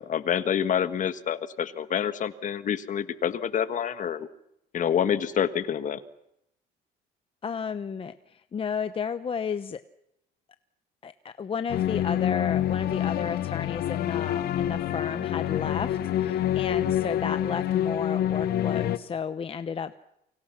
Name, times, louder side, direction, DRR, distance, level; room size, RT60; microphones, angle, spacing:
voice 1, 0.0-4.3 4.7-6.0, left 8 dB, 50° left, 11 dB, 1.5 m, -27 dB
voice 2, 7.4-9.8 11.0-19.9, left 6 dB, 35° left, 11 dB, 0.8 m, -33 dB
sound 1, 11.7-19.0, left 11 dB, 65° left, 0.9 m, -27 dB
29.0 x 24.5 x 5.9 m, 0.80 s
cardioid pair, 110°, 17 cm